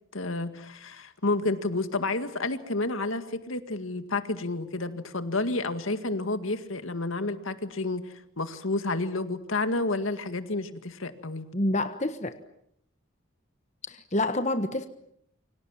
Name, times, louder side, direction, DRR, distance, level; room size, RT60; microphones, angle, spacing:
voice 1, 0.1-11.5, left 2 dB, 80° left, 10 dB, 2.1 m, -30 dB
voice 2, 11.5-12.4 13.9-14.9, left 1 dB, 35° left, 9 dB, 1.3 m, -27 dB
28.5 x 25.0 x 7.3 m, 0.72 s
head